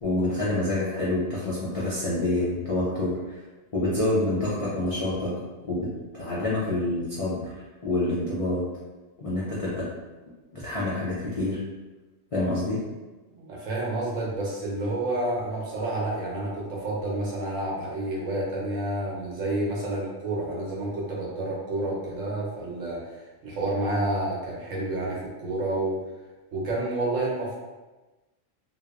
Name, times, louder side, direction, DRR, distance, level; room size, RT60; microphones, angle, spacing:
voice 1, 0.0-3.4 3.7-5.3 5.6-5.9 6.1-7.5 7.8-8.6 9.2-9.8 10.5-11.6 12.3-12.8, left 2 dB, 65° left, -8 dB, 0.3 m, -27 dB
voice 2, 13.4-26.0 26.5-27.5, right 2 dB, 80° right, -4 dB, 1.1 m, -29 dB
2.9 x 2.0 x 2.3 m, 1.2 s
omnidirectional pair, 1.3 m